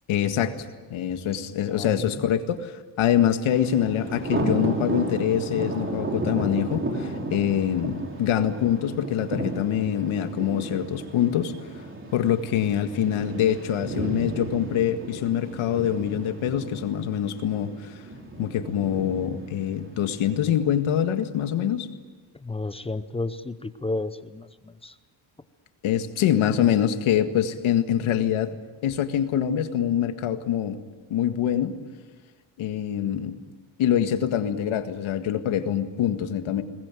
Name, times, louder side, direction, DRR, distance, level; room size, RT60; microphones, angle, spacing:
voice 1, 0.1-11.5 12.1-17.9 18.4-21.9 25.8-28.6 28.8-30.8 31.1-31.8 32.6-33.4 33.8-36.6, left 10 dB, 85° left, 8 dB, 1.9 m, -25 dB
voice 2, 1.7-2.1 22.4-24.9, left 2 dB, 10° left, 12 dB, 0.7 m, -32 dB
Thunder, 3.5-20.4, right 2 dB, 25° right, 3.2 m, -33 dB
22.5 x 20.0 x 9.2 m, 1.3 s
cardioid pair, 155°, 47 cm